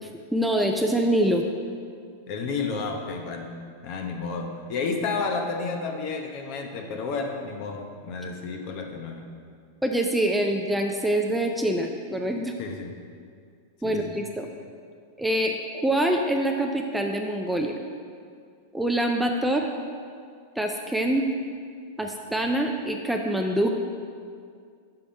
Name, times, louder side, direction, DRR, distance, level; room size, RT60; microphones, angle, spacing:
voice 1, 0.0-1.4 9.8-12.5 13.8-14.5 15.2-15.6 15.8-17.7 18.7-19.7 20.6-21.3 22.0-23.7, right 1 dB, 5° right, 2 dB, 0.4 m, -25 dB
voice 2, 2.3-3.5 3.8-9.2 12.6-13.0 13.8-14.0, left 4 dB, 50° left, 3 dB, 0.8 m, -31 dB
5.7 x 5.3 x 5.2 m, 2.2 s
supercardioid pair, 135°, 0 cm